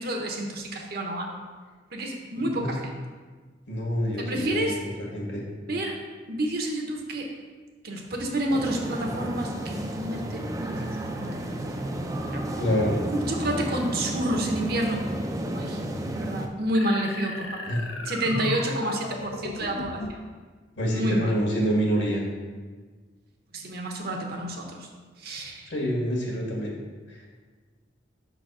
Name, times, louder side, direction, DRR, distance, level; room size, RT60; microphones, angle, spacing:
voice 1, 0.0-1.4 1.9-2.8 4.2-4.8 5.7-6.0 6.3-7.3 7.8-11.6 12.3-12.5 13.1-15.1 15.5-15.8 16.1-20.2 20.9-21.3 23.5-24.9 25.2-25.7, right 1 dB, 50° right, 2 dB, 0.9 m, -29 dB
voice 2, 3.7-4.7 5.0-5.4 12.6-13.0 17.7-17.8 18.4-18.5 20.8-22.2 25.7-26.7 27.1-27.2, equal, 65° left, -2 dB, 1.7 m, -26 dB
sound 1, 8.5-16.5, right 1 dB, 20° right, 0.4 m, -32 dB
sound 2, 16.7-20.3, left 2 dB, 85° left, 0.8 m, -37 dB
5.6 x 4.0 x 6.1 m, 1.4 s
head